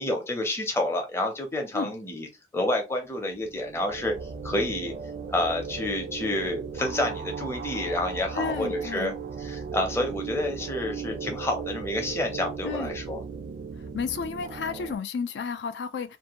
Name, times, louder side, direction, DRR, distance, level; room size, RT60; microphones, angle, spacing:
voice 1, 0.0-2.3 2.5-4.1 4.4-4.9 5.3-9.1 9.4-13.2, left 1 dB, 15° left, 0.6 m, -29 dB
sound 1, 3.4-14.9, right 6 dB, 50° right, 0.3 m, -36 dB
voice 2, 8.4-9.1 12.6-13.0 13.9-16.2, left 5 dB, 70° left, 0.3 m, -32 dB
2.6 x 2.1 x 2.9 m
head